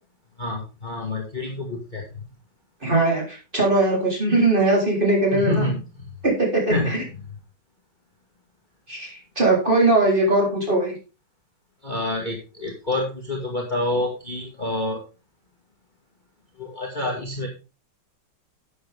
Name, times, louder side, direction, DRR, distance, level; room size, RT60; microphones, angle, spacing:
voice 1, 0.4-2.0 5.3-6.1 6.7-6.9 11.8-15.0 16.6-17.5, left 2 dB, 25° left, 0 dB, 2.1 m, -27 dB
voice 2, 2.8-5.6 6.2-7.0 8.9-10.9, right 2 dB, 25° right, -3 dB, 4.1 m, -20 dB
12.5 x 8.1 x 3.6 m, 0.32 s
omnidirectional pair, 2.1 m